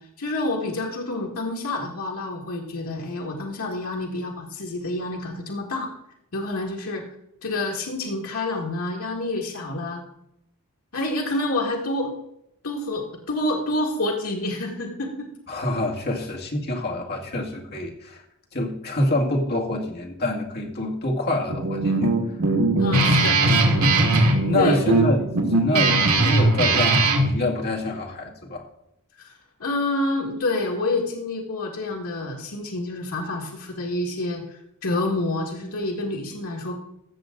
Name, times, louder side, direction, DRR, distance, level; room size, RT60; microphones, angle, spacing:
voice 1, 0.2-5.9 6.3-7.0 7.4-10.0 10.9-12.1 12.6-15.3 22.8-23.9 24.3-24.9 25.5-25.6 29.2-29.3 29.6-34.4 34.8-36.8, left 2 dB, 75° left, -1 dB, 1.9 m, -28 dB
voice 2, 15.5-18.2 18.5-22.1 23.0-23.2 24.4-28.6, left 1 dB, 45° left, 0 dB, 2.0 m, -26 dB
Guitar, 21.5-27.3, right 2 dB, 75° right, 2.1 m, -19 dB
15.5 x 6.9 x 3.8 m, 0.80 s
head